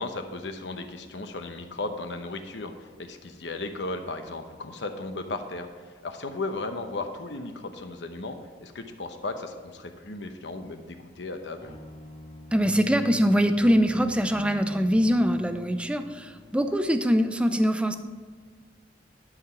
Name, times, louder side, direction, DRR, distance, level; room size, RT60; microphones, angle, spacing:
voice 1, 0.0-8.4 8.6-11.7, left 2 dB, 75° left, 7 dB, 0.9 m, -35 dB
sound 1, 11.6-16.8, equal, 25° left, 2.3 m, -44 dB
voice 2, 12.5-18.0, equal, 5° right, 8 dB, 0.5 m, -23 dB
11.5 x 4.9 x 5.7 m, 1.5 s
head